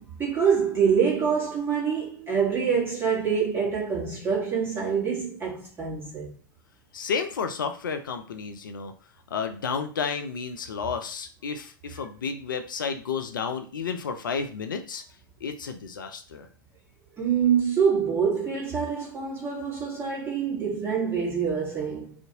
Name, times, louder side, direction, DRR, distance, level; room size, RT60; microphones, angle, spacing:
voice 1, 0.0-6.3 17.2-22.1, right 6 dB, 20° right, 1.4 m, -25 dB
voice 2, 6.9-8.9 9.3-15.0 15.4-16.5, left 6 dB, 70° left, 0.4 m, -31 dB
2.6 x 2.5 x 2.7 m
figure-of-eight pair, 90°, 11 cm